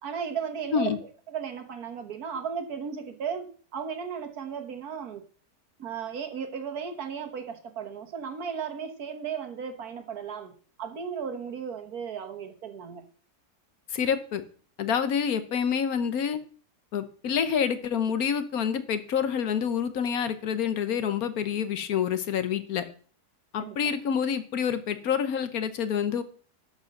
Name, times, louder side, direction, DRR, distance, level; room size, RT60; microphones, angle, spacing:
voice 1, 0.0-5.2 5.8-10.5 10.8-13.0 23.6-23.9, right 7 dB, 65° right, 8 dB, 1.7 m, -35 dB
voice 2, 13.9-14.4 14.8-16.4 16.9-22.9 23.5-26.2, left 7 dB, 65° left, 12 dB, 1.3 m, -27 dB
11.5 x 5.1 x 6.4 m, 0.43 s
omnidirectional pair, 1.7 m